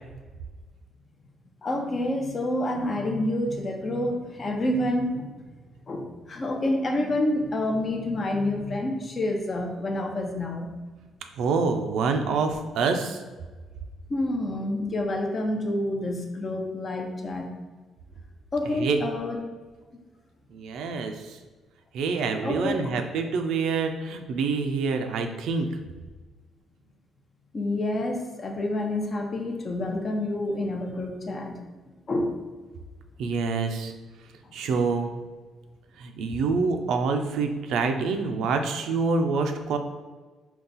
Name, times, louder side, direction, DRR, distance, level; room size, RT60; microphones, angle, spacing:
voice 1, 1.6-5.4 5.9-10.7 14.1-17.5 18.5-19.4 22.4-22.9 27.5-31.5 32.1-32.4 34.4-34.5, left 1 dB, 40° left, 3 dB, 0.6 m, -28 dB
voice 2, 11.4-13.2 18.8-19.0 20.5-21.4 21.9-25.7 33.2-33.9 34.5-35.1 36.0-39.8, right 4 dB, 80° right, 6 dB, 0.4 m, -26 dB
3.9 x 2.3 x 3.9 m, 1.3 s
cardioid pair, 90°, 0 cm